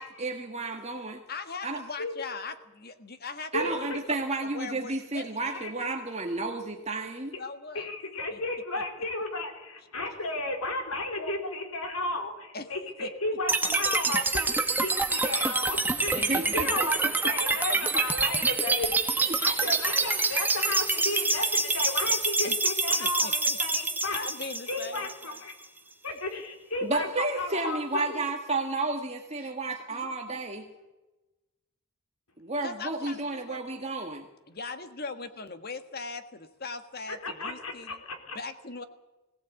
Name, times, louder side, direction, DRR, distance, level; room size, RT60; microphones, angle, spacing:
voice 1, 0.0-1.2 1.6-1.8 3.5-7.3 16.2-17.1 19.3-19.7 26.8-30.7 32.4-34.3, right 2 dB, 30° right, 2 dB, 1.6 m, -32 dB
voice 2, 1.3-3.9 4.4-5.6 7.4-7.9 8.3-8.4 12.5-12.7 13.0-13.1 15.9-16.6 17.0-17.1 17.5-17.8 19.6-19.9 22.4-22.6 23.0-25.5 26.1-26.4 28.8-28.9 29.4-29.5 29.9-30.1 32.6-33.7 34.5-38.0 38.3-38.8, left 4 dB, 45° left, 9 dB, 1.6 m, -41 dB
voice 3, 3.5-4.0 5.5-5.7 7.8-24.2 24.7-25.5 26.0-28.2 37.1-38.4, left 2 dB, 80° left, 4 dB, 3.9 m, -34 dB
sound 1, 13.5-25.5, right 3 dB, 10° right, 1.1 m, -27 dB
20.5 x 17.5 x 8.3 m, 1.1 s
head